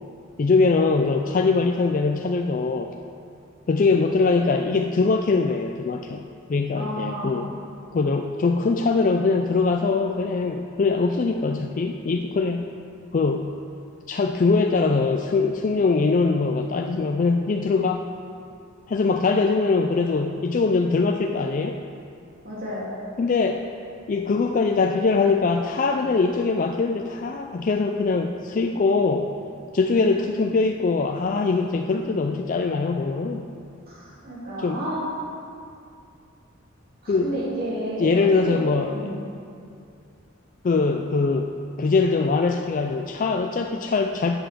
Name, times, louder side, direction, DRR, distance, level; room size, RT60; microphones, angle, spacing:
voice 1, 0.4-2.9 3.7-6.2 6.5-7.5 7.9-12.7 13.1-13.5 14.1-18.0 18.9-21.8 23.2-23.6 24.1-29.3 29.7-33.5 34.6-34.8 37.1-37.4 38.0-39.2 40.6-41.5 41.8-44.4, left 4 dB, 40° left, 3 dB, 0.4 m, -22 dB
voice 2, 6.7-7.3 22.4-23.0 33.9-35.1 37.0-38.6 38.9-39.1, right 1 dB, 45° right, -8 dB, 2.8 m, -31 dB
8.1 x 8.0 x 6.6 m, 2.5 s
head